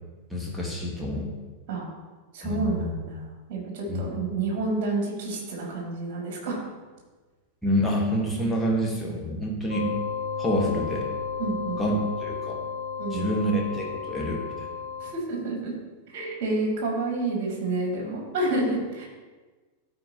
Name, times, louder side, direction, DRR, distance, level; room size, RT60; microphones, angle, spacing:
voice 1, 0.3-1.3 2.4-2.9 3.9-4.0 7.6-9.9 10.4-11.1 11.8-11.9 12.2-12.6 13.1-14.4, equal, ahead, -4 dB, 1.6 m, -27 dB
voice 2, 2.3-6.6 11.4-11.8 13.0-13.3 15.0-15.7 16.1-19.1, right 2 dB, 45° right, -2 dB, 2.6 m, -29 dB
sound 1, 9.7-15.1, left 6 dB, 75° left, 1.0 m, -33 dB
13.5 x 4.6 x 3.0 m, 1.3 s
figure-of-eight pair, 90°, 0 cm